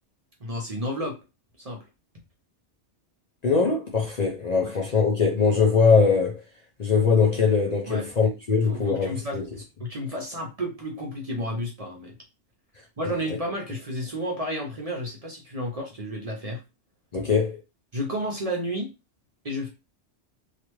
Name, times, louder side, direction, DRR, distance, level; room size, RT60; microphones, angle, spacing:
voice 1, 0.4-1.2 1.6-1.8 4.6-4.7 7.9-8.1 8.7-9.4 9.8-12.1 13.0-16.6 17.9-18.9 19.4-19.7, equal, 40° right, 0.6 m, -31 dB
voice 2, 3.4-6.4 6.8-9.4 17.1-17.6, left 5 dB, 45° left, 0.6 m, -21 dB
3.2 x 2.4 x 3.0 m
omnidirectional pair, 1.2 m